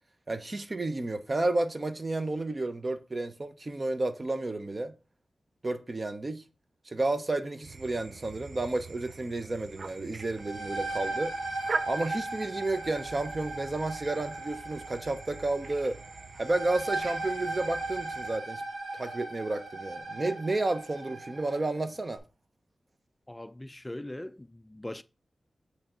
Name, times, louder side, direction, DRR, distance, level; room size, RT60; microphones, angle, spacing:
voice 1, 0.3-4.9 5.6-6.4 6.9-11.3 11.9-16.0 16.4-18.6 18.9-22.2, right 2 dB, 45° right, 0.9 m, -31 dB
sound 1, 7.6-18.4, right 4 dB, 70° right, 0.4 m, -43 dB
sound 2, 10.2-21.7, right 2 dB, 85° right, 1.5 m, -37 dB
voice 2, 23.3-25.0, left 1 dB, 20° left, 0.3 m, -40 dB
8.5 x 3.4 x 3.9 m
cardioid pair, 50°, 0 cm